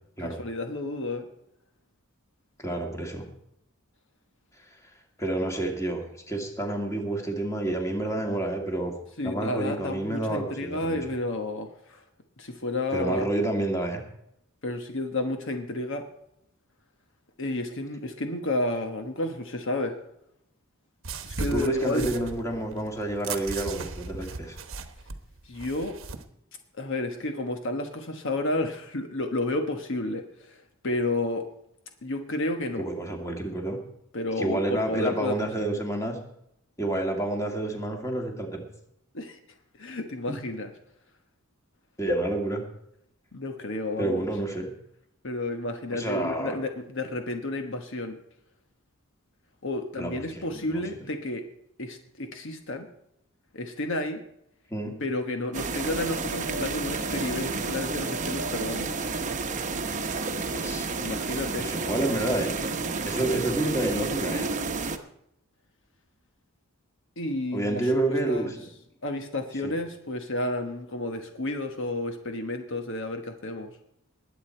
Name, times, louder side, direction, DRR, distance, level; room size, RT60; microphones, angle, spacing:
voice 1, 0.2-1.3 9.2-12.0 12.4-13.3 14.6-16.0 17.4-20.0 21.3-22.3 25.4-26.0 26.8-31.5 32.0-32.9 34.1-35.7 39.1-39.4 39.8-40.7 43.3-44.2 45.2-48.2 49.6-51.4 51.8-52.9 53.5-54.2 55.0-59.0 61.0-61.7 67.2-68.5 69.0-73.8, left 2 dB, 60° left, 5 dB, 1.3 m, -31 dB
voice 2, 2.6-3.3 5.2-8.9 9.2-11.0 12.9-14.0 21.5-24.6 32.8-33.8 34.4-36.2 36.8-38.6 40.3-40.4 42.0-42.6 44.0-44.7 45.9-46.6 50.0-50.8 54.7-55.0 60.5-60.9 61.6-62.5 63.0-64.5 67.5-68.7 69.6-69.7, right 1 dB, 15° left, 2 dB, 2.2 m, -29 dB
sound 1, 21.0-26.2, right 4 dB, 65° right, 1.0 m, -37 dB
sound 2, 55.5-65.0, right 3 dB, 35° right, 0.9 m, -30 dB
20.5 x 8.4 x 4.5 m, 0.77 s
head